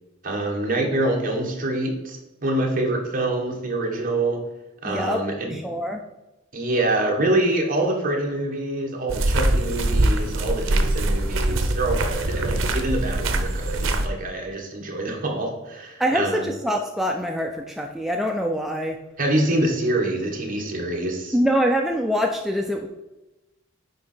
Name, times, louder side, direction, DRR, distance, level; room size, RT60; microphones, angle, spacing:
voice 1, 0.2-4.4 4.8-5.6 6.5-16.5 19.2-21.4, right 1 dB, 45° right, 0 dB, 1.5 m, -25 dB
voice 2, 4.8-5.2 5.5-6.0 16.0-19.0 21.3-22.9, equal, ahead, 2 dB, 0.4 m, -24 dB
sound 1, 9.1-14.1, right 1 dB, 75° right, 0.8 m, -23 dB
9.4 x 3.8 x 4.4 m, 1.0 s
head